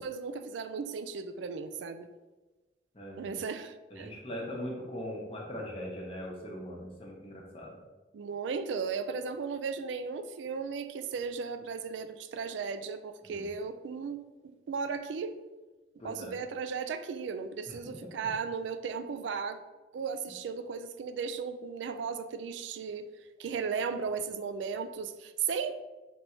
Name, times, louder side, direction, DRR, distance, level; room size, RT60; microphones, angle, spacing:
voice 1, 0.0-2.1 3.2-4.1 8.1-15.4 16.0-19.6 19.9-23.1 23.4-25.7, right 5 dB, 85° right, 9 dB, 0.3 m, -36 dB
voice 2, 2.9-3.4 3.9-7.8 13.2-13.5 16.0-16.4 17.7-17.8 18.2-18.3, equal, 30° left, -2 dB, 0.9 m, -40 dB
3.4 x 2.6 x 4.4 m, 1.2 s
head